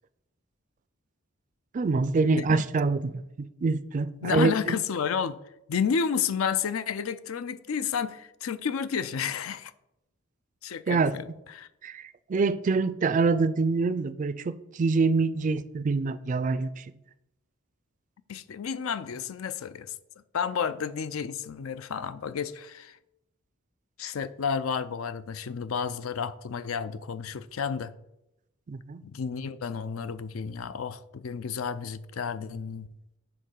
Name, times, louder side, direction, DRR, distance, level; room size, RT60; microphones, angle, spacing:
voice 1, 1.7-3.2 3.6-4.8 10.9-11.2 11.8-16.8 28.7-29.0, right 4 dB, 35° right, 0.3 m, -25 dB
voice 2, 4.2-5.4 5.7-9.7 10.6-11.2 11.5-11.7 18.3-19.9 20.3-23.0 24.0-27.9 29.0-32.9, left 6 dB, 75° left, 0.4 m, -31 dB
7.9 x 3.7 x 6.4 m
head